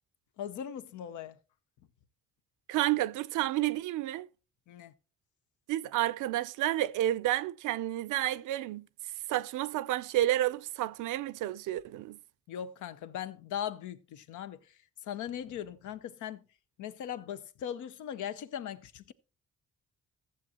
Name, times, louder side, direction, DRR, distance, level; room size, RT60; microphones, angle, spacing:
voice 1, 0.4-1.4 4.7-4.9 12.5-14.6 15.0-16.4 16.8-19.1, left 9 dB, 80° left, 0.8 m, -39 dB
voice 2, 2.7-4.3 5.7-8.9 9.3-12.2, right 14 dB, 80° right, 0.5 m, -30 dB
14.5 x 7.5 x 2.9 m
cardioid pair, 90°, 30 cm